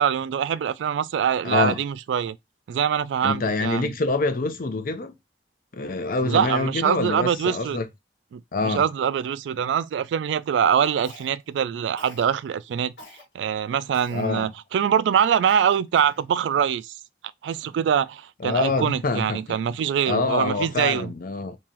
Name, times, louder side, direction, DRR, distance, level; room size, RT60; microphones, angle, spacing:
voice 1, 0.0-2.4 2.7-3.9 6.2-7.8 8.3-12.9 13.3-16.9 17.4-21.1, right 8 dB, 85° right, 0.3 m, -24 dB
voice 2, 1.4-1.8 3.2-5.1 5.7-7.8 8.5-8.8 14.1-14.5 18.4-19.6 20.1-21.6, left 3 dB, 50° left, 0.6 m, -26 dB
Cough, 11.0-11.6 12.0-12.3 13.0-13.2 13.9-14.3 14.8-14.9 15.5-16.2, left 1 dB, 80° left, 1.4 m, -46 dB
3.7 x 2.9 x 2.9 m
head